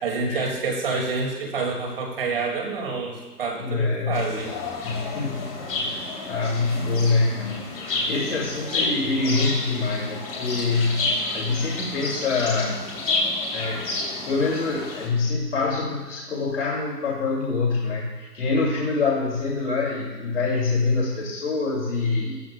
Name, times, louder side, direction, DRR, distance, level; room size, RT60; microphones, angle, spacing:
voice 1, 0.0-4.5, right 4 dB, 35° right, 1 dB, 2.3 m, -28 dB
voice 2, 3.5-4.3 4.8-12.8 13.5-13.9 14.2-22.4, left 3 dB, 45° left, -4 dB, 2.6 m, -25 dB
sound 1, 4.1-15.1, left 2 dB, 20° left, 2.9 m, -30 dB
16.5 x 14.5 x 2.3 m, 1.3 s
hypercardioid pair, 165°, 48 cm